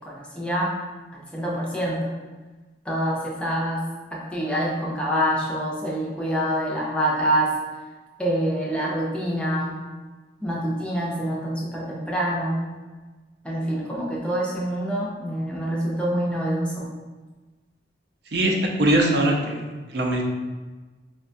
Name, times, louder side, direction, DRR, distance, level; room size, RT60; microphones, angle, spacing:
voice 1, 0.1-0.7 1.3-2.1 2.9-3.8 4.1-7.5 8.2-9.7 10.4-12.6 13.4-16.9, equal, 5° left, -5 dB, 0.5 m, -26 dB
voice 2, 18.3-19.6 19.9-20.2, right 1 dB, 60° right, 1 dB, 0.5 m, -21 dB
4.6 x 2.2 x 2.5 m, 1.3 s
head